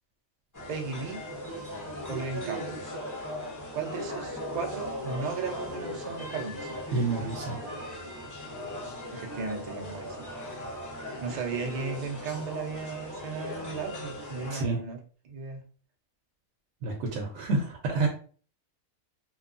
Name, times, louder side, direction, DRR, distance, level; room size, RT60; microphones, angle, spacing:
sound 1, 0.5-14.6, left 1 dB, 25° left, 0.4 m, -38 dB
voice 1, 0.7-1.2 2.1-2.8 3.7-6.8 9.1-10.3 11.2-15.0 15.2-15.6 17.5-17.6, right 4 dB, 85° right, 2 dB, 0.3 m, -35 dB
voice 2, 6.9-7.6 14.5-14.8 16.8-18.1, right 3 dB, 70° right, 0 dB, 0.8 m, -29 dB
2.8 x 2.2 x 2.4 m, 0.42 s
omnidirectional pair, 1.4 m